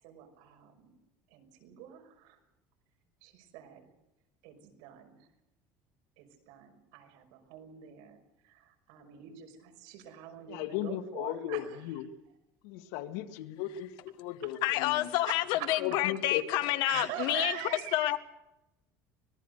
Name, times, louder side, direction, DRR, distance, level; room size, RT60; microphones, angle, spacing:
voice 1, 0.0-0.9 1.3-2.4 3.2-3.9 4.4-5.3 6.2-11.7 15.2-15.7 16.9-18.1, right 11 dB, 75° right, 4 dB, 5.8 m, -44 dB
voice 2, 10.5-12.1 12.6-13.9 14.2-15.1 15.8-16.5 17.0-17.1, left 12 dB, 85° left, 7 dB, 2.0 m, -36 dB
voice 3, 14.6-18.2, left 16 dB, 65° left, 11 dB, 1.5 m, -29 dB
25.0 x 19.5 x 6.7 m, 0.91 s
cardioid pair, 165°, 8 cm